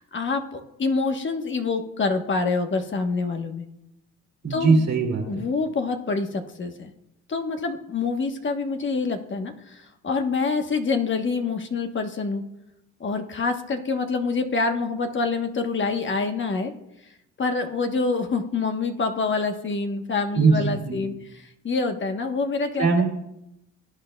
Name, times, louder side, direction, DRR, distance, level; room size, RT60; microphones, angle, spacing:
voice 1, 0.0-3.6 4.5-4.9 5.3-6.9 7.3-12.4 13.0-16.7 17.4-21.1 21.6-22.9, left 4 dB, 40° left, 5 dB, 1.1 m, -26 dB
voice 2, 4.4-5.5 20.4-21.0 22.8-23.0, right 4 dB, 60° right, 1 dB, 2.3 m, -21 dB
19.0 x 8.7 x 2.2 m, 0.86 s
cardioid pair, 90°, 30 cm